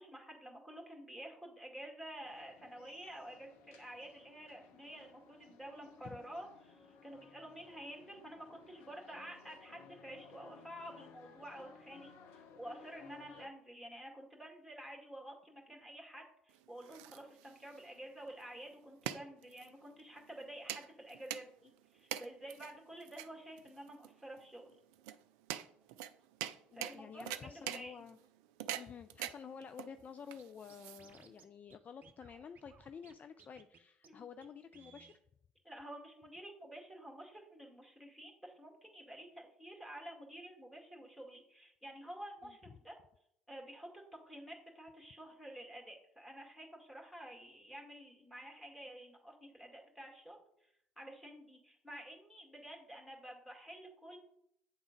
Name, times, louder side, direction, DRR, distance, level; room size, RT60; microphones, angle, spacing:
voice 1, 0.0-24.8 26.7-28.1 34.1-34.2 35.6-42.9 43.5-54.2, right 1 dB, ahead, 0 dB, 2.0 m, -50 dB
sound 1, 2.2-13.5, left 5 dB, 55° left, 0.7 m, -59 dB
sound 2, 16.5-31.4, right 12 dB, 60° right, 0.3 m, -46 dB
voice 2, 26.7-28.2 28.7-35.1 42.4-42.5, left 6 dB, 35° left, 10 dB, 0.3 m, -51 dB
Scratching (performance technique), 30.4-30.5 30.7-31.4 31.7-31.8 32.0-33.1 33.4-33.8 34.0-34.1 34.4-34.5 34.7-35.2, right 6 dB, 40° right, 0.8 m, -60 dB
8.5 x 3.6 x 5.1 m, 0.75 s
figure-of-eight pair, 55°, 5 cm